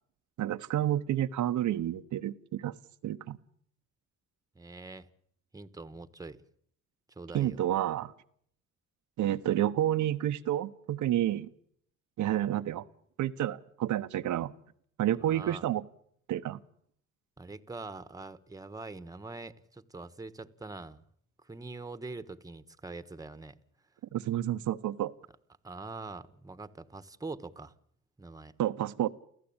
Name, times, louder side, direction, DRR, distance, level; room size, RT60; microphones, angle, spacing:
voice 1, 0.4-2.7 3.0-3.4 7.3-8.1 9.2-11.5 12.2-12.8 13.2-14.5 15.0-15.8 16.3-16.6 24.1-25.1 28.6-29.1, right 12 dB, 75° right, 1.0 m, -30 dB
voice 2, 4.5-5.1 5.5-6.4 7.1-7.6 15.2-15.7 17.4-21.0 21.4-23.6 25.6-27.7 28.2-28.5, right 3 dB, 10° right, 1.4 m, -43 dB
29.0 x 15.0 x 8.8 m
cardioid pair, 90°, 30 cm